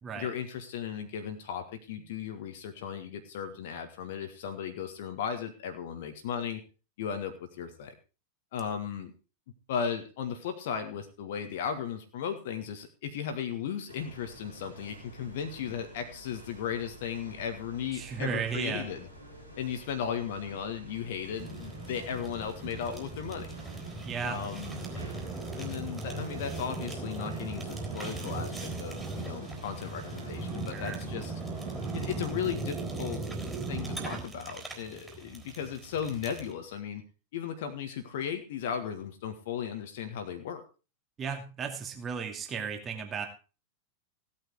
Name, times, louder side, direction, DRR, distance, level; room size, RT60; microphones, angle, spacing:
voice 1, 0.1-6.6 7.0-7.9 8.5-9.1 9.7-19.1 19.6-23.5 24.2-24.9 25.6-31.3 31.9-33.2 33.7-37.0 37.3-40.6, left 8 dB, 55° left, 7 dB, 1.7 m, -36 dB
sound 1, 13.9-32.3, right 1 dB, 90° right, 3.3 m, -49 dB
voice 2, 17.9-18.9 24.0-24.4 30.7-31.0 41.2-43.3, right 6 dB, 25° right, 4 dB, 2.6 m, -35 dB
Fire, 21.4-36.5, right 3 dB, 10° right, 3.9 m, -38 dB
16.5 x 8.9 x 4.7 m, 0.33 s
figure-of-eight pair, 90°, 0 cm